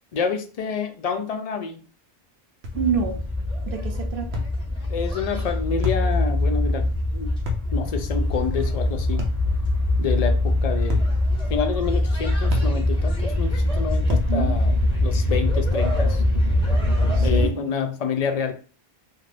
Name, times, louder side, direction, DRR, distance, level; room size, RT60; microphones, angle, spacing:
voice 1, 0.1-1.8 4.9-7.3 7.7-9.3 10.0-11.0 11.5-14.7 15.0-16.2 17.2-18.5, left 6 dB, 55° left, 6 dB, 0.4 m, -28 dB
sound 1, 2.6-2.9 4.3-4.6 5.8-6.1 7.5-7.7 9.2-9.5 10.9-11.2 12.5-12.8 14.1-14.4, left 3 dB, 85° right, 1.0 m, -29 dB
sound 2, 2.7-17.5, left 1 dB, 5° left, 0.7 m, -23 dB
voice 2, 2.7-3.2 3.7-4.4 14.1-14.5 17.1-17.6, right 6 dB, 65° right, 3 dB, 0.8 m, -27 dB
2.5 x 2.5 x 3.3 m, 0.38 s
omnidirectional pair, 1.0 m